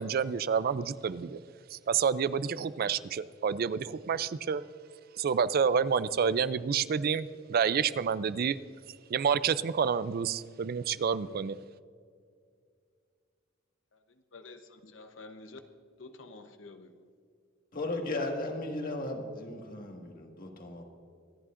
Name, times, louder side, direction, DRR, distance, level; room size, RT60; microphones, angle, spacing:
voice 1, 0.0-1.4 1.7-4.6 5.2-8.6 9.1-11.6, right 6 dB, 50° right, 16 dB, 0.4 m, -29 dB
voice 2, 14.3-15.6 16.0-16.9, left 3 dB, 75° left, 7 dB, 0.9 m, -49 dB
voice 3, 17.7-20.8, left 2 dB, 50° left, 2 dB, 1.7 m, -36 dB
26.0 x 11.0 x 2.5 m, 2.2 s
head